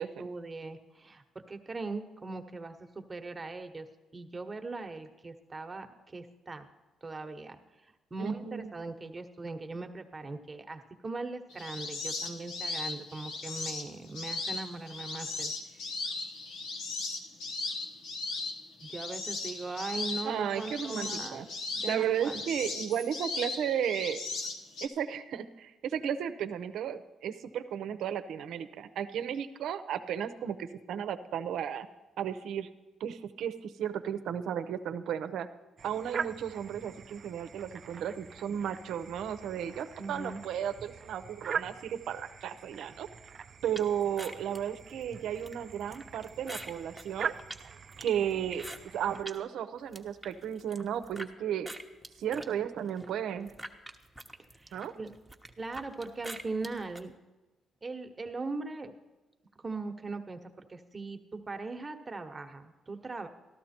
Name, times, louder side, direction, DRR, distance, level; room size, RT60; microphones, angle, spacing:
voice 1, 0.0-3.9 4.1-6.7 7.0-7.6 8.1-15.5 18.8-21.5 21.7-22.4 40.0-40.4 54.6-55.1 55.6-57.1 57.8-58.9 59.6-63.3, right 3 dB, 25° right, 6 dB, 1.2 m, -40 dB
voice 2, 8.2-8.7 20.2-21.4 21.9-24.2 24.8-31.9 32.2-32.7 33.0-35.5 35.8-43.1 43.6-47.3 48.0-48.7 48.9-51.7 52.2-53.5 54.7-54.9, right 9 dB, 75° right, 10 dB, 0.7 m, -34 dB
sound 1, 11.5-24.9, left 3 dB, 85° left, 1.2 m, -37 dB
sound 2, 35.8-49.2, right 6 dB, 50° right, 0.4 m, -43 dB
sound 3, 43.7-49.4 49.8-51.3 51.6-57.0, right 1 dB, 5° right, 1.0 m, -46 dB
13.5 x 12.0 x 4.4 m, 1.1 s
cardioid pair, 90°, 0 cm